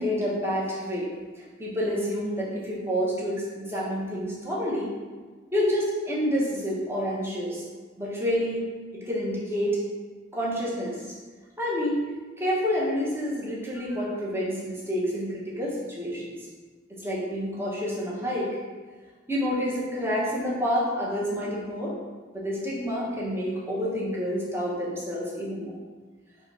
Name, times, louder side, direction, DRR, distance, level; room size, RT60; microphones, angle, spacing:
voice 1, 0.0-4.9 5.5-7.6 8.0-8.6 8.9-9.8 10.3-11.1 11.6-12.0 12.4-16.4 16.9-18.5 19.3-22.0 22.3-25.8, equal, 10° right, -6 dB, 1.0 m, -28 dB
3.9 x 2.9 x 4.7 m, 1.4 s
head